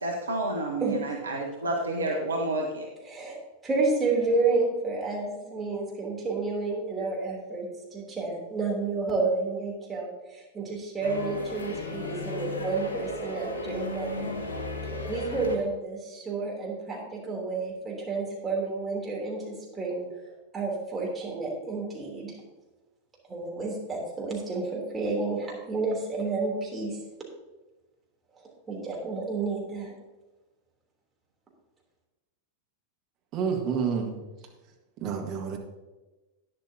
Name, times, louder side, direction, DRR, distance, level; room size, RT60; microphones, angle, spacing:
voice 1, 0.0-2.8, right 2 dB, 75° right, 0 dB, 1.2 m, -30 dB
voice 2, 3.0-14.4 15.1-20.0 20.5-22.3 23.3-27.0 28.3-30.0, right 3 dB, 15° right, -2 dB, 3.4 m, -30 dB
sound 1, 11.0-15.6, left 2 dB, 65° left, 1.6 m, -35 dB
voice 3, 33.3-34.2 35.0-35.6, right 6 dB, 35° right, 2 dB, 1.7 m, -29 dB
11.5 x 10.0 x 2.9 m, 1.1 s
figure-of-eight pair, 90°, 0 cm